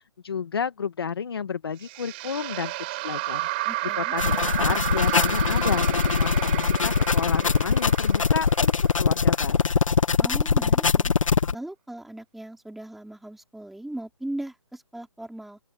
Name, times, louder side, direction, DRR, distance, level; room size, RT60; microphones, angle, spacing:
voice 1, 0.2-3.5 3.9-8.7 9.0-9.7, left 6 dB, 45° left, 1.9 m, -31 dB
sound 1, 1.8-9.1, right 20 dB, 20° right, 4.4 m, -31 dB
voice 2, 3.6-4.1 10.2-11.1 11.5-15.6, right 1 dB, ahead, 5.0 m, -38 dB
sound 2, 4.2-11.5, left 5 dB, 75° left, 1.2 m, -22 dB
open air
hypercardioid pair, 170°, 17 cm